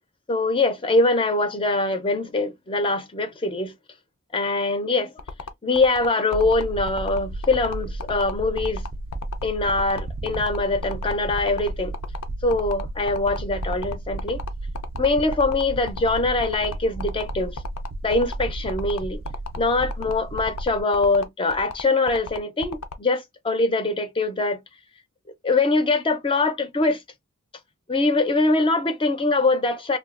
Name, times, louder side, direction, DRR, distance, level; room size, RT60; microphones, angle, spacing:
voice 1, 0.3-3.7 4.3-5.1 5.6-8.8 9.4-11.9 12.4-14.4 15.0-17.6 18.0-19.2 19.6-24.6 25.4-27.0 27.9-30.0, left 3 dB, 25° left, 0.5 m, -23 dB
sound 1, 5.2-22.9, left 5 dB, 90° left, 0.5 m, -35 dB
sound 2, 6.3-20.8, right 2 dB, 45° right, 0.3 m, -33 dB
3.2 x 2.3 x 2.4 m
head